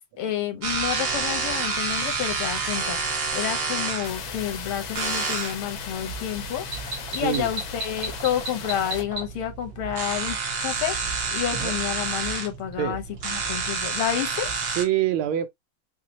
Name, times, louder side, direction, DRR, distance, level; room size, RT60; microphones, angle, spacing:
voice 1, 0.2-10.4 10.6-11.0 11.3-14.6, left 10 dB, 90° left, 1.9 m, -30 dB
sound 1, 0.6-14.8, right 4 dB, 65° right, 2.0 m, -30 dB
sound 2, 4.0-9.0, left 7 dB, 65° left, 0.9 m, -37 dB
voice 2, 14.8-15.5, right 11 dB, 80° right, 1.5 m, -25 dB
5.6 x 2.2 x 2.9 m
omnidirectional pair, 2.3 m